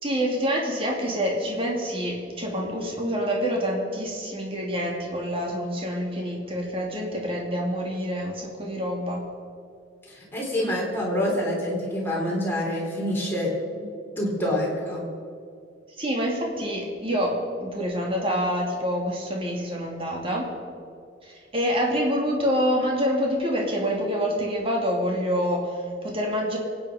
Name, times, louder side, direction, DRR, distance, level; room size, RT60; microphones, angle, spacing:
voice 1, 0.0-9.2 16.0-20.5 21.2-26.6, equal, 30° right, -1 dB, 2.6 m, -27 dB
voice 2, 10.1-13.5 14.2-15.0, left 1 dB, 10° left, -4 dB, 3.8 m, -26 dB
24.0 x 9.5 x 5.0 m, 2.3 s
head